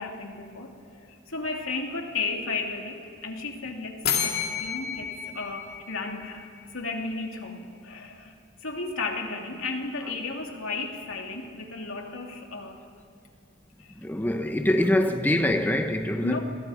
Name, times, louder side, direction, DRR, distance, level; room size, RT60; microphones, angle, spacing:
voice 1, 0.0-8.3 8.6-12.8 13.8-13.9 16.2-16.4, left 3 dB, 80° left, 2.8 m, -34 dB
sound 1, 4.1-6.8, left 8 dB, 50° left, 2.6 m, -31 dB
voice 2, 14.0-16.4, left 1 dB, 10° left, 0.9 m, -24 dB
29.0 x 22.0 x 5.0 m
head